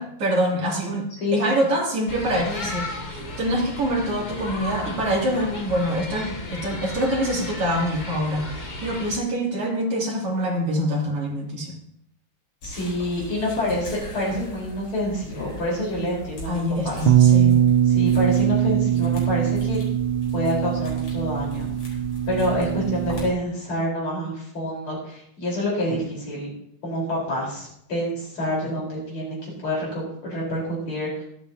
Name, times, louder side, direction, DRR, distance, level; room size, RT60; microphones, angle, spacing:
voice 1, 0.0-11.8 16.5-17.6, equal, 85° right, -3 dB, 3.8 m, -25 dB
sound 1, 2.1-9.2, left 1 dB, 40° left, 0.6 m, -34 dB
sound 2, 12.6-23.3, equal, 90° left, 5.1 m, -39 dB
voice 2, 12.6-17.1 17.8-19.8 20.3-21.7 22.3-26.5 26.8-31.2, left 1 dB, 70° left, -4 dB, 5.2 m, -27 dB
Bass guitar, 17.1-23.3, right 10 dB, 70° right, 1.4 m, -21 dB
23.0 x 8.5 x 2.8 m, 0.73 s
omnidirectional pair, 2.4 m